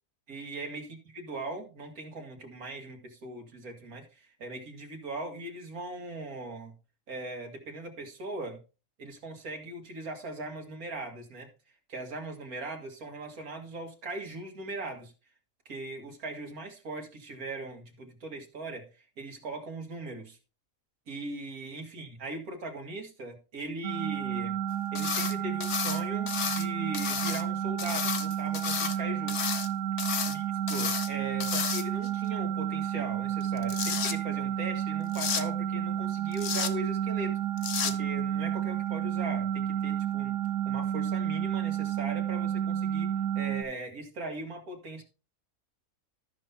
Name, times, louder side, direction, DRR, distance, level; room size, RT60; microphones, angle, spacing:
voice 1, 0.3-6.7 7.1-8.6 9.0-11.5 11.9-15.1 15.7-18.9 19.2-20.4 21.1-24.6 24.9-29.4 30.2-30.4 30.7-37.4 37.8-40.3 40.7-43.1 43.3-45.0, right 2 dB, 90° right, 3 dB, 2.3 m, -39 dB
sound 1, 23.8-43.6, right 10 dB, 40° right, 1.0 m, -31 dB
sound 2, 24.9-25.3 25.6-26.7 26.9-27.4 27.8-29.0 29.3-29.7 30.0-30.4 30.7-31.1 31.4-32.1 33.4-34.1 35.1-35.4 36.3-36.7 37.6-37.9, left 7 dB, 55° left, 0.9 m, -32 dB
13.5 x 5.6 x 3.5 m, 0.31 s
omnidirectional pair, 1.5 m